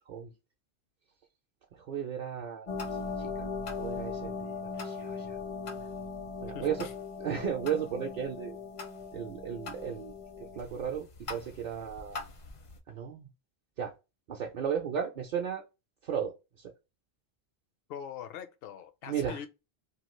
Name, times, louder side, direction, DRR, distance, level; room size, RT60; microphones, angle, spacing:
voice 1, 1.7-2.7 3.0-3.5 3.8-4.3 4.7-5.4 6.4-6.9 7.2-8.6 9.1-10.1 10.5-12.2 12.9-13.3 13.8-13.9 14.3-15.6 16.0-16.3 16.6-16.7 19.1-19.4, right 8 dB, 55° right, 0.6 m, -35 dB
sound 1, 2.7-12.8, left 4 dB, 45° left, 0.4 m, -39 dB
voice 2, 6.5-6.9 17.9-19.5, left 8 dB, 70° left, 0.8 m, -42 dB
2.9 x 2.3 x 3.0 m
omnidirectional pair, 1.0 m